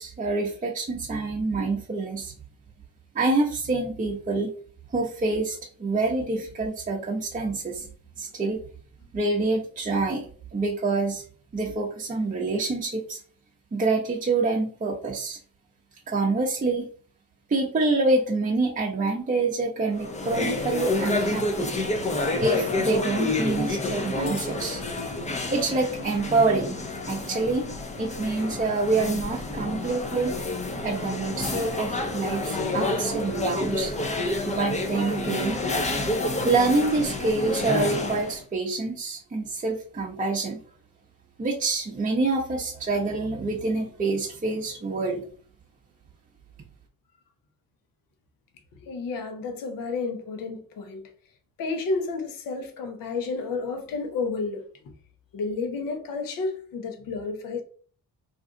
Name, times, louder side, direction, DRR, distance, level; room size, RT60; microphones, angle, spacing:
voice 1, 0.0-2.3 3.1-4.5 4.9-7.9 8.2-8.6 9.1-11.2 11.5-13.2 13.7-15.4 16.1-16.9 17.5-21.7 22.4-24.8 25.5-26.8 27.1-27.7 28.0-30.3 30.8-33.9 34.5-35.6 36.4-40.6 41.4-45.2, right 3 dB, 25° right, 0.7 m, -26 dB
sound 1, 19.9-38.4, left 2 dB, 20° left, 0.6 m, -29 dB
voice 2, 48.8-51.0 51.6-54.6 55.3-57.6, left 4 dB, 70° left, 0.8 m, -31 dB
2.6 x 2.3 x 3.7 m
supercardioid pair, 70°, 35 cm